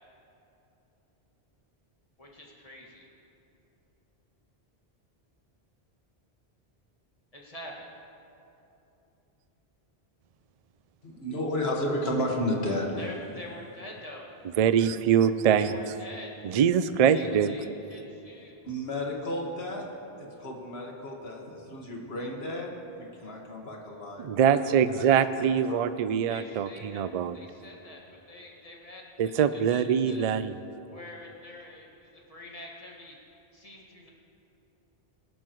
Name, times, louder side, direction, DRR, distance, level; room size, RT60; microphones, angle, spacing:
voice 1, 2.2-3.1 7.3-7.9 13.0-14.3 15.6-16.3 17.1-18.7 26.3-30.3 30.9-33.2 33.5-34.1, left 1 dB, 35° left, -2 dB, 1.9 m, -46 dB
voice 2, 11.0-12.9 18.6-19.9 20.2-22.7 23.0-24.6 24.9-25.0 25.3-25.8, left 1 dB, 75° left, -1 dB, 2.0 m, -32 dB
voice 3, 14.6-15.7 16.4-17.5 24.2-27.4 29.2-30.5, right 8 dB, 55° right, 12 dB, 0.4 m, -23 dB
21.5 x 12.0 x 3.1 m, 2.9 s
omnidirectional pair, 1.1 m